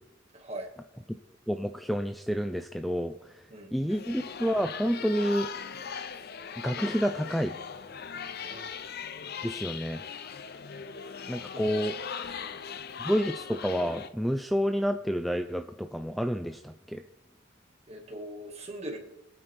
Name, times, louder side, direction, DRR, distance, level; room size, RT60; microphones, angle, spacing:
voice 1, 0.3-0.7 3.5-4.0 8.4-8.7 11.1-11.2 11.5-11.9 12.4-12.6 17.9-19.0, right 1 dB, 30° right, 2 dB, 2.0 m, -41 dB
voice 2, 1.5-3.4 3.7-5.5 6.6-7.5 9.4-10.0 11.3-11.9 13.0-17.0, equal, ahead, 7 dB, 0.3 m, -29 dB
sound 1, 3.9-14.1, left 6 dB, 50° left, 0.6 m, -39 dB
23.5 x 8.9 x 3.5 m, 0.93 s
head